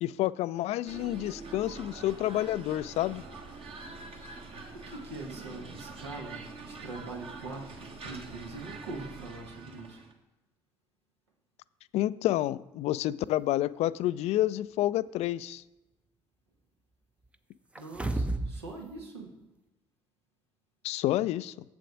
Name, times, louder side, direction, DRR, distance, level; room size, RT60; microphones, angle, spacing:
voice 1, 0.0-3.2 11.9-15.6 20.8-21.5, left 14 dB, 50° left, 17 dB, 0.4 m, -29 dB
sound 1, 0.9-10.1, right 3 dB, 45° right, 1.5 m, -45 dB
voice 2, 4.7-10.0 17.8-19.3, right 3 dB, 80° right, 0 dB, 1.5 m, -43 dB
sound 2, 17.8-18.6 19.0-19.1, right 2 dB, 10° right, 0.6 m, -31 dB
7.6 x 6.9 x 6.0 m, 1.1 s
figure-of-eight pair, 50°, 14 cm